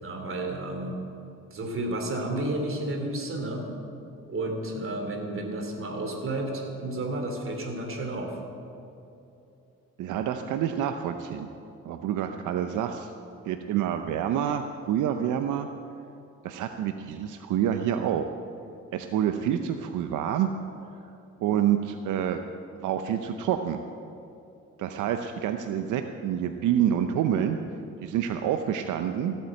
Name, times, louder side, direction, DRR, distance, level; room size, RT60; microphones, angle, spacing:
voice 1, 0.0-1.0 1.5-3.7 4.3-8.4, right 1 dB, 45° right, 3 dB, 3.0 m, -31 dB
voice 2, 10.0-11.5 11.8-13.1 13.5-15.7 16.4-18.3 18.9-20.5 21.4-22.4 22.8-23.8 24.8-27.6 28.0-29.4, right 10 dB, 80° right, 7 dB, 0.7 m, -27 dB
15.5 x 8.9 x 7.8 m, 2.8 s
cardioid pair, 90°, 30 cm